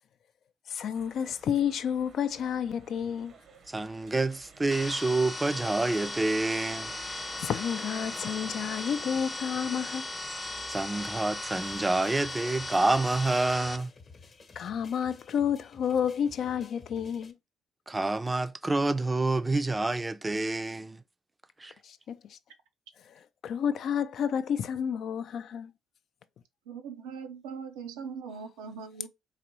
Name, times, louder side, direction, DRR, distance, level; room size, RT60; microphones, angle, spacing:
voice 1, 0.7-3.3 7.4-10.1 14.6-17.4 21.8-22.4 23.1-25.7, left 8 dB, 60° left, 0.4 m, -30 dB
sound 1, 0.9-11.8, right 5 dB, 60° right, 0.8 m, -50 dB
voice 2, 3.7-6.9 10.7-13.9 17.9-21.0 21.6-21.7, right 2 dB, 20° right, 0.5 m, -28 dB
sound 2, 4.7-13.8, left 2 dB, 25° left, 0.6 m, -37 dB
sound 3, 11.7-17.3, left 4 dB, 45° left, 0.9 m, -53 dB
voice 3, 26.7-29.1, right 6 dB, 85° right, 0.6 m, -40 dB
4.0 x 2.6 x 3.0 m
supercardioid pair, 65°, 0 cm